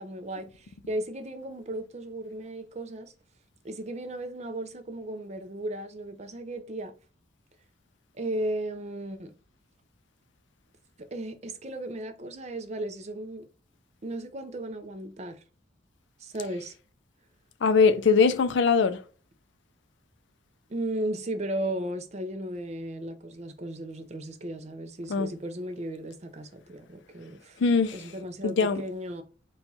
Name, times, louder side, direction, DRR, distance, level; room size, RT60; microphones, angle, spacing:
voice 1, 0.0-3.1 3.6-6.9 8.2-9.3 11.0-13.4 14.0-15.4 16.2-16.7 20.7-27.6 27.9-29.2, right 1 dB, 35° right, 0.5 m, -35 dB
voice 2, 17.6-19.0 25.1-25.3 27.6-28.1 28.4-28.8, left 5 dB, 60° left, 0.4 m, -21 dB
4.3 x 2.3 x 4.0 m
head